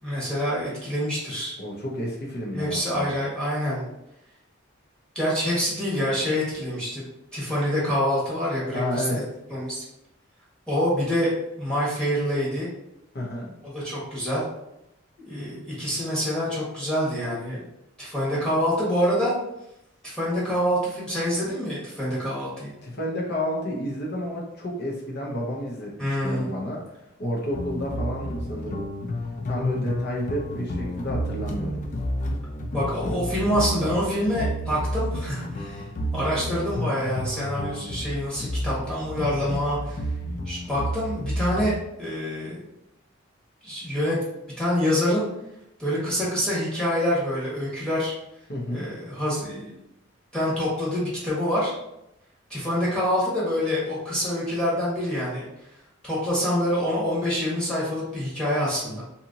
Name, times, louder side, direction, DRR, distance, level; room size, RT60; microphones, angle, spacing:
voice 1, 0.0-1.5 2.5-3.9 5.1-7.0 7.3-9.2 9.5-9.8 10.7-11.3 11.6-12.7 13.7-14.4 15.3-17.6 18.0-19.3 20.0-22.7 26.0-26.5 32.7-35.8 36.1-40.0 40.4-42.6 43.6-44.2 44.6-45.3 45.8-48.1 48.7-49.8 50.3-51.7 52.5-55.5 56.0-59.0, equal, 5° left, -8 dB, 1.1 m, -26 dB
voice 2, 1.6-3.1 8.7-9.2 13.1-13.5 22.8-26.8 27.2-28.9 29.5-31.8 48.5-48.9, left 1 dB, 55° left, -2 dB, 0.8 m, -30 dB
sound 1, 27.5-41.8, equal, 40° left, 0.3 m, -31 dB
2.8 x 2.6 x 2.6 m, 0.85 s
head